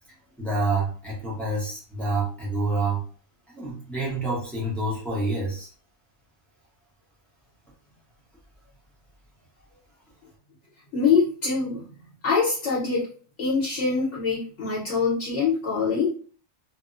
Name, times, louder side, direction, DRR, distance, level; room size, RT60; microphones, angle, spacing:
voice 1, 0.4-3.0 3.5-5.7, right 2 dB, ahead, -6 dB, 0.6 m, -27 dB
voice 2, 10.9-11.8 12.2-13.1 13.4-16.2, left 5 dB, 60° left, -7 dB, 1.1 m, -24 dB
2.7 x 2.0 x 2.4 m, 0.42 s
omnidirectional pair, 1.4 m